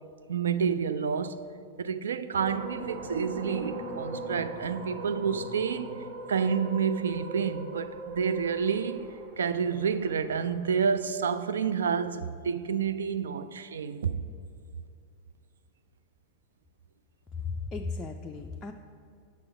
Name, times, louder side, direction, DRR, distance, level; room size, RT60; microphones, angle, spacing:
voice 1, 0.3-1.4 1.8-6.0 6.3-9.1 9.4-14.2, right 6 dB, 65° right, 0.3 m, -29 dB
sound 1, 2.4-10.8, right 3 dB, 45° right, 1.0 m, -40 dB
voice 2, 17.5-18.7, left 4 dB, 20° left, 0.4 m, -35 dB
6.1 x 5.8 x 5.9 m
figure-of-eight pair, 90°, 0 cm